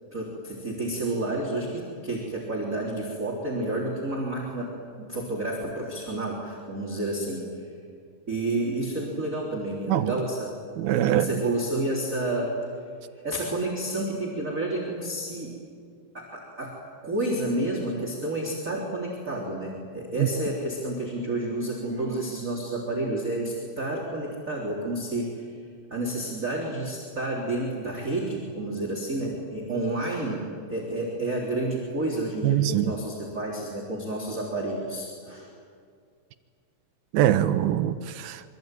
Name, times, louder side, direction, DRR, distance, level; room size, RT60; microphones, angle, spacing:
voice 1, 0.1-7.4 8.3-10.6 10.9-12.5 13.2-15.6 16.1-25.4 25.9-35.5, right 2 dB, 20° right, -3 dB, 3.8 m, -30 dB
voice 2, 10.8-11.3 20.2-20.3 32.4-32.9 37.1-38.4, right 12 dB, 80° right, 11 dB, 2.6 m, -23 dB
27.0 x 24.5 x 9.1 m, 2.2 s
omnidirectional pair, 4.3 m